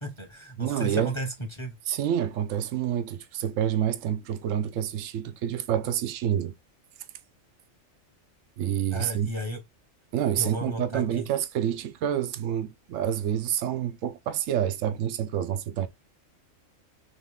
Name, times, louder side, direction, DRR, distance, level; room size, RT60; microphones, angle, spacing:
voice 1, 0.0-1.8 8.9-9.6 10.4-11.0, right 1 dB, 25° left, 1.0 m, -34 dB
voice 2, 0.6-1.1 1.9-6.5 8.6-9.3 10.1-15.9, right 10 dB, 75° right, 1.0 m, -28 dB
3.9 x 3.1 x 3.6 m
omnidirectional pair, 1.4 m